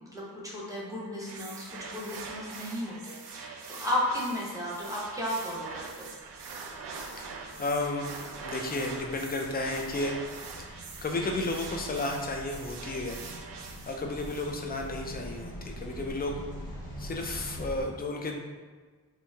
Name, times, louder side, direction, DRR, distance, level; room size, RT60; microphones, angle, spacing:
voice 1, 0.1-6.1, left 1 dB, 10° right, -6 dB, 0.8 m, -34 dB
sound 1, 1.3-14.9, right 4 dB, 90° right, 0.5 m, -43 dB
sound 2, 5.3-17.8, equal, 65° left, 1.2 m, -44 dB
voice 2, 7.2-10.2 10.7-13.2 13.6-16.4 17.0-18.4, left 2 dB, 25° left, 2 dB, 0.4 m, -33 dB
3.0 x 2.7 x 3.3 m, 1.4 s
wide cardioid pair, 120°, 39 cm